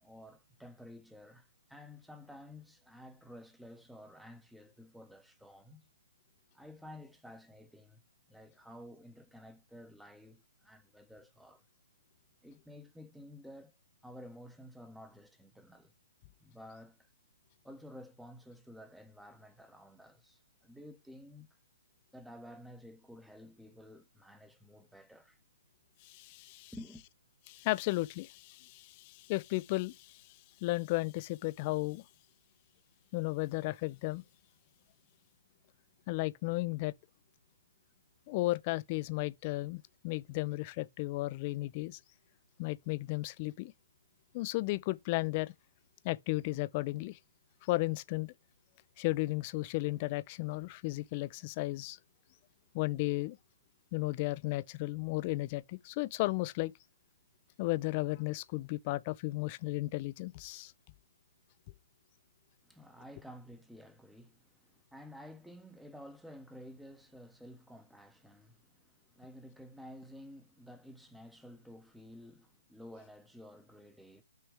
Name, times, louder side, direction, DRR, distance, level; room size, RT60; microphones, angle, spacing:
voice 1, 0.0-5.9 6.5-8.0 8.3-11.6 12.4-13.7 14.0-15.9 16.4-17.1 17.6-21.5 22.1-25.4 26.4-27.1 62.6-74.2, left 1 dB, ahead, 0.8 m, -52 dB
voice 2, 26.0-26.7 27.5-30.2 30.6-32.0 33.1-34.2 36.1-36.9 38.3-42.0 42.6-43.7 44.3-45.5 46.0-47.2 47.6-48.3 49.0-52.0 52.7-53.4 53.9-56.7 57.6-60.7, left 21 dB, 30° left, 0.4 m, -34 dB
6.3 x 3.3 x 4.8 m
hypercardioid pair, 150°, 0 cm